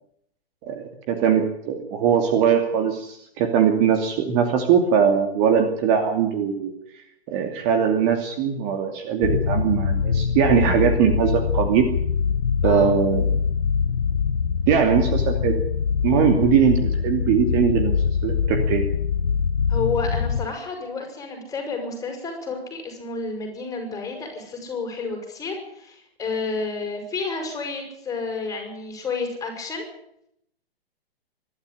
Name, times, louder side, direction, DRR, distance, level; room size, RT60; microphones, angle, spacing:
voice 1, 0.6-6.7 7.3-11.9 12.6-13.4 14.7-15.6 16.0-18.0 18.2-18.8, right 7 dB, 30° right, 5 dB, 2.7 m, -21 dB
sound 1, 9.2-20.5, left 6 dB, 70° left, 1.0 m, -23 dB
voice 2, 19.7-29.9, left 4 dB, 10° left, 3 dB, 6.6 m, -30 dB
24.5 x 12.0 x 10.0 m, 0.74 s
figure-of-eight pair, 125°, 30 cm